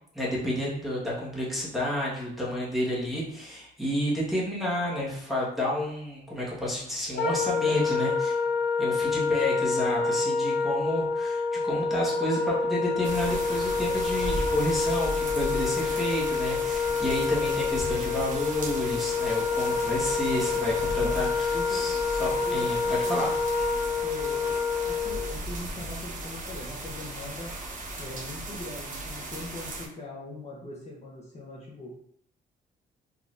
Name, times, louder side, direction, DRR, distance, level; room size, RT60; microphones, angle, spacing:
voice 1, 0.1-8.4 8.8-23.3, left 1 dB, ahead, -7 dB, 1.4 m, -30 dB
Wind instrument woodwind instrument, 7.2-25.3, left 5 dB, 60° left, 0.9 m, -27 dB
sound 1, 13.0-29.9, right 2 dB, 40° right, 0.9 m, -36 dB
voice 2, 21.5-22.0 22.4-23.3 24.0-24.5 24.8-27.5 28.0-31.9, left 2 dB, 35° left, -4 dB, 0.9 m, -41 dB
3.9 x 2.8 x 2.5 m, 0.67 s
cardioid pair, 90°, 20 cm